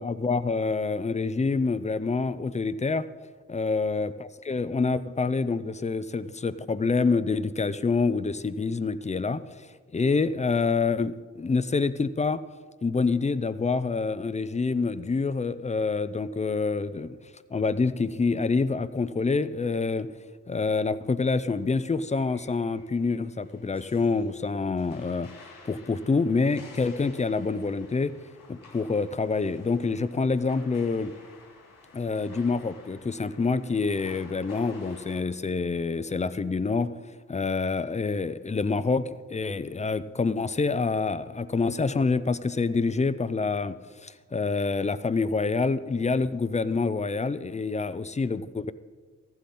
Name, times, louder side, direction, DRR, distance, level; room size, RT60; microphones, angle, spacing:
voice 1, 0.0-3.1 3.5-9.4 9.9-12.4 12.8-17.2 17.5-20.1 20.5-25.3 25.6-28.1 28.5-31.1 31.9-36.9 37.3-48.7, left 4 dB, 20° left, 14 dB, 0.5 m, -27 dB
sound 1, 21.4-35.2, left 3 dB, 90° left, 3.0 m, -52 dB
15.0 x 11.5 x 4.3 m, 1.5 s
cardioid pair, 75°, 32 cm